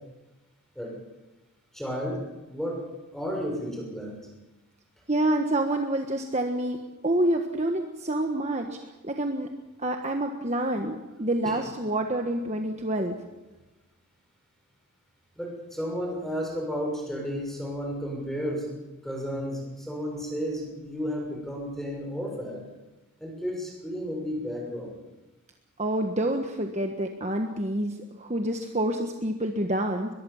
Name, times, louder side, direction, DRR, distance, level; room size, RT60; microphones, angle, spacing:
voice 1, 1.7-4.3 11.4-11.6 15.4-18.7 19.0-22.6 23.2-25.0, equal, ahead, 0 dB, 6.4 m, -33 dB
voice 2, 5.1-6.8 7.0-8.7 9.0-9.5 9.8-13.2 25.8-27.9 28.2-30.1, right 1 dB, 30° right, 4 dB, 1.4 m, -27 dB
22.5 x 22.0 x 7.2 m, 1.1 s
head